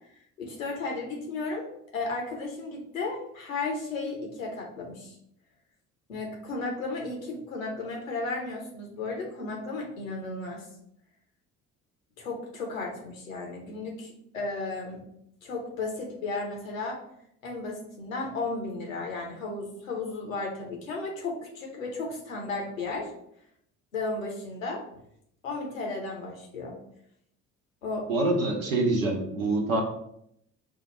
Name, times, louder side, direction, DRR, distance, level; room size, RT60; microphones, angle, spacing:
voice 1, 0.4-5.2 6.1-10.7 12.2-15.0 15.4-17.0 17.4-23.1 23.9-24.8 25.4-26.8 27.8-28.1, left 3 dB, 80° left, 0 dB, 0.9 m, -34 dB
voice 2, 28.1-29.8, right 2 dB, 80° right, 1 dB, 0.9 m, -25 dB
4.8 x 2.4 x 4.1 m, 0.74 s
figure-of-eight pair, 45°, 40 cm